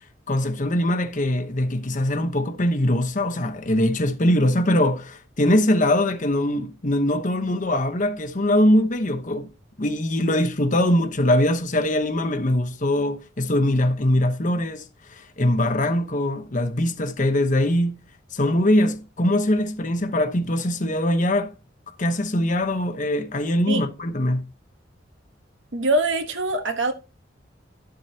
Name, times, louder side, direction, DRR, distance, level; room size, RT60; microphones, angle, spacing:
voice 1, 0.3-9.5 9.8-18.0 18.3-21.5 22.0-24.5, left 1 dB, 45° left, 1.0 m, -22 dB
voice 2, 25.7-26.9, right 2 dB, 75° right, 1.3 m, -23 dB
11.5 x 7.7 x 2.8 m
head